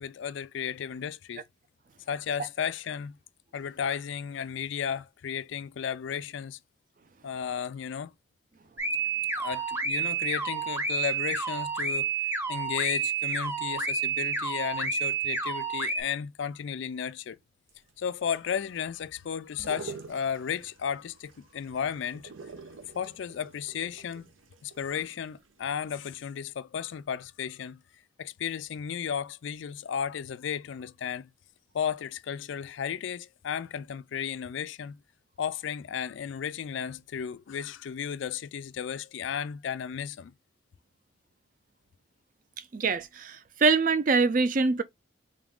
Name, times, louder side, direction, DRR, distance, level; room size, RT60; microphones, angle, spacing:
voice 1, 0.0-1.4 2.1-3.2 3.5-6.6 7.2-8.1 9.4-12.1 12.5-17.4 18.0-22.3 22.9-24.3 24.6-27.8 28.2-31.3 31.7-35.0 35.4-40.3, left 8 dB, 70° left, 0.3 m, -34 dB
sound 1, 8.8-16.0, right 5 dB, 15° right, 0.8 m, -30 dB
sound 2, 17.7-25.6 26.0-26.1, right 4 dB, 90° right, 0.7 m, -47 dB
voice 2, 42.7-44.8, right 4 dB, 40° right, 0.4 m, -24 dB
3.9 x 2.4 x 3.5 m
head